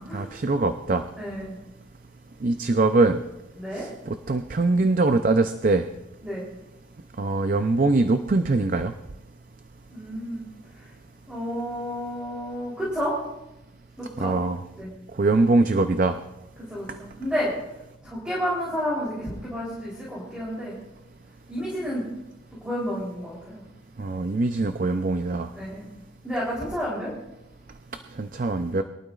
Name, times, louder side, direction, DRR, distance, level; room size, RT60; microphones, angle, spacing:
voice 1, 0.1-1.0 2.4-3.2 3.7-5.8 7.2-8.9 14.2-14.6 15.2-16.2 24.0-25.5 28.2-28.8, right 3 dB, 45° right, 8 dB, 0.5 m, -22 dB
voice 2, 1.2-1.5 3.5-3.9 6.2-6.4 9.9-10.4 11.3-13.1 14.0-14.3 14.8-14.9 16.7-17.5 18.0-20.8 21.5-22.1 22.6-23.6 25.5-25.9 26.2-27.1, equal, 5° right, -7 dB, 3.4 m, -30 dB
22.5 x 12.0 x 2.4 m, 0.95 s
head